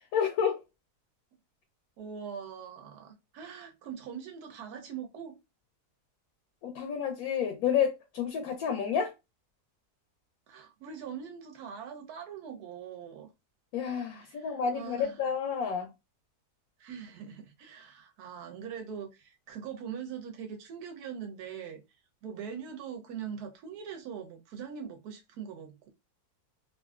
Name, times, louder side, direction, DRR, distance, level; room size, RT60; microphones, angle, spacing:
voice 1, 0.1-0.6 6.6-9.1 13.7-15.9, left 7 dB, 75° left, 1.0 m, -30 dB
voice 2, 2.0-5.3 10.5-13.3 14.3-15.1 16.8-21.8 22.2-25.9, right 7 dB, 80° right, 1.2 m, -42 dB
3.0 x 2.5 x 2.3 m
omnidirectional pair, 1.7 m